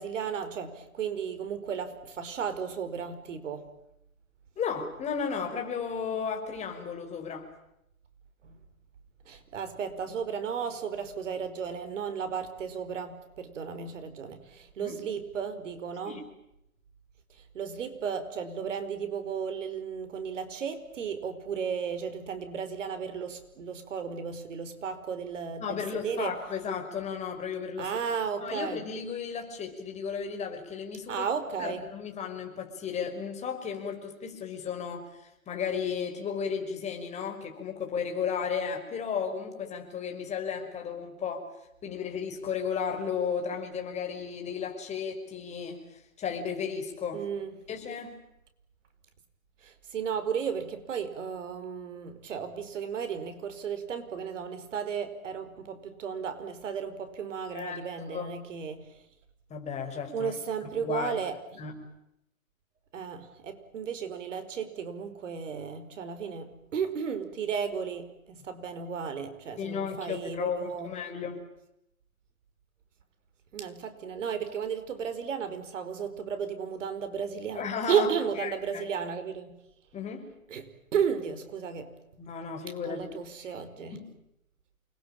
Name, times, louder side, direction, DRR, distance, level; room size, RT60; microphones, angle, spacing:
voice 1, 0.0-3.7 8.4-8.6 9.2-16.2 17.5-26.3 27.8-28.8 31.1-31.8 47.1-47.5 49.6-58.9 60.1-61.3 62.9-70.9 73.5-79.6 80.5-81.9 82.8-84.0, right 7 dB, 60° right, 9 dB, 5.0 m, -34 dB
voice 2, 4.6-7.5 14.8-15.0 16.1-16.2 25.6-27.9 28.3-31.3 31.6-41.5 41.8-47.2 47.7-48.2 57.5-57.8 58.1-58.3 59.5-60.3 60.6-61.2 61.6-61.8 69.6-71.4 77.5-78.1 78.4-78.8 79.9-80.3 82.2-83.1 83.4-83.5 83.9-84.1, left 6 dB, 15° left, 4 dB, 5.8 m, -34 dB
29.0 x 22.5 x 9.1 m, 0.82 s
hypercardioid pair, 135°, 42 cm